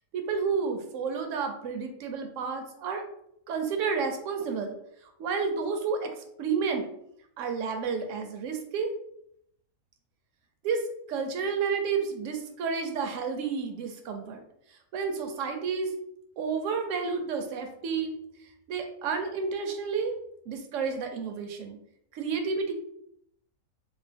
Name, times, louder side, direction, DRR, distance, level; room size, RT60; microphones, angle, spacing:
voice 1, 0.1-3.0 3.5-4.8 5.2-6.1 6.4-6.9 7.4-8.9 10.6-10.8 11.1-14.4 14.9-15.9 16.4-18.1 18.7-20.2 20.5-21.8 22.1-22.7, right 5 dB, 70° right, 5 dB, 0.8 m, -30 dB
2.8 x 2.0 x 3.4 m, 0.73 s
omnidirectional pair, 1.5 m